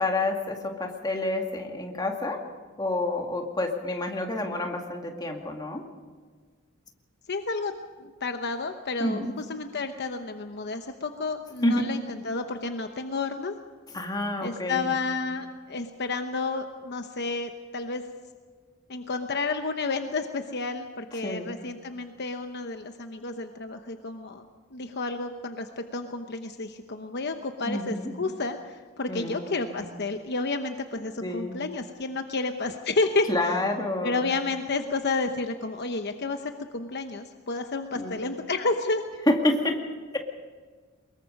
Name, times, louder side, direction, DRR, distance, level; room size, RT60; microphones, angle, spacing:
voice 1, 0.0-2.4 2.8-5.8 9.0-9.3 11.6-11.8 13.9-14.9 21.2-21.5 27.6-28.1 29.1-29.8 31.2-31.6 33.3-34.3 37.9-38.2 39.3-39.8, left 2 dB, 20° left, 2 dB, 2.2 m, -28 dB
voice 2, 7.3-7.7 8.0-13.5 14.4-18.0 18.9-24.5 24.7-33.3 34.0-39.0, left 3 dB, 55° left, 6 dB, 1.0 m, -31 dB
23.0 x 21.5 x 5.3 m, 1.5 s
head